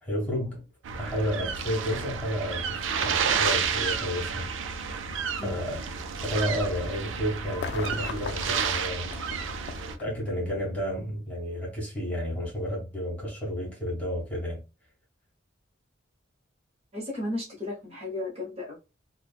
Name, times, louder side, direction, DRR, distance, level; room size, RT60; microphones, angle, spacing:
voice 1, 0.0-0.6 1.0-4.5 5.4-5.9 6.2-9.0 9.8-14.6, equal, 5° left, 1.5 m, -31 dB
sound 1, 0.8-9.9, right 6 dB, 70° right, 0.4 m, -31 dB
sound 2, 7.5-10.6 11.7-11.8, left 5 dB, 60° left, 0.4 m, -39 dB
voice 2, 16.9-18.8, left 2 dB, 35° right, 0.9 m, -34 dB
3.2 x 2.1 x 2.3 m
head